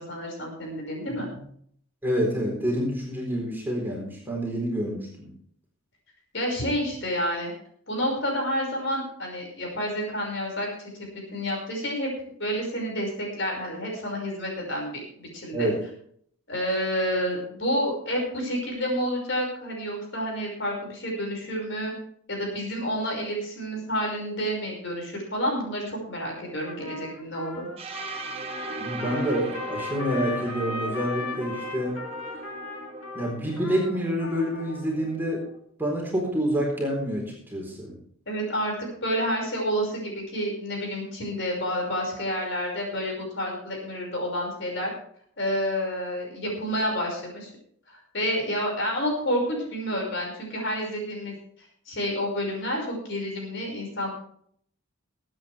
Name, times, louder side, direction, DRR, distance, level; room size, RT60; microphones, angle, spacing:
voice 1, 0.0-1.3 6.3-7.5 7.9-10.9 11.3-12.1 12.4-15.7 16.5-21.9 22.3-27.7 38.3-38.7 39.0-44.9 45.4-47.5 47.9-51.4 51.9-54.1, equal, 55° left, 0 dB, 5.5 m, -29 dB
voice 2, 2.0-5.3 15.5-15.8 28.8-32.0 33.1-35.5 35.8-38.0, equal, 10° right, -2 dB, 4.1 m, -27 dB
Trumpet, 26.6-34.9, left 3 dB, 85° left, 2.8 m, -38 dB
Rave Pad Atmosphere Stab C, 27.8-35.6, right 2 dB, 30° right, 1.3 m, -39 dB
22.5 x 9.0 x 3.4 m, 0.64 s
head